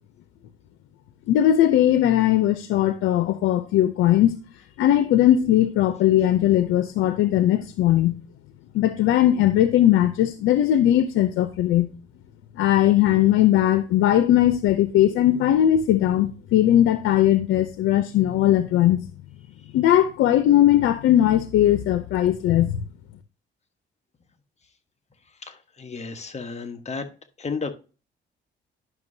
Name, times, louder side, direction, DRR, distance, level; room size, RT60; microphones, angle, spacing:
voice 1, 1.3-4.4 4.8-8.2 8.7-11.9 12.6-19.0 19.7-22.8, left 12 dB, 90° left, 0.6 m, -19 dB
voice 2, 25.4-27.0 27.4-27.7, left 4 dB, 35° left, 1.2 m, -33 dB
10.5 x 6.0 x 2.7 m
cardioid pair, 90°, 20 cm